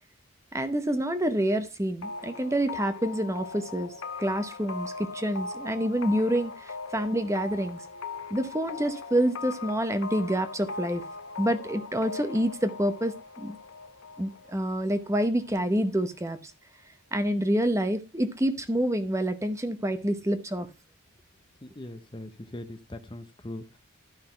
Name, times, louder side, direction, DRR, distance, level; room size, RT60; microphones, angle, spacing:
voice 1, 0.5-3.9 4.2-7.8 8.3-11.0 11.4-13.6 14.2-16.5 17.1-20.7, right 1 dB, 15° right, 10 dB, 0.8 m, -27 dB
sound 1, 2.0-15.5, left 4 dB, 65° left, 1.0 m, -40 dB
voice 2, 21.6-23.8, left 1 dB, 20° left, 10 dB, 0.7 m, -41 dB
12.0 x 5.7 x 4.3 m, 0.26 s
head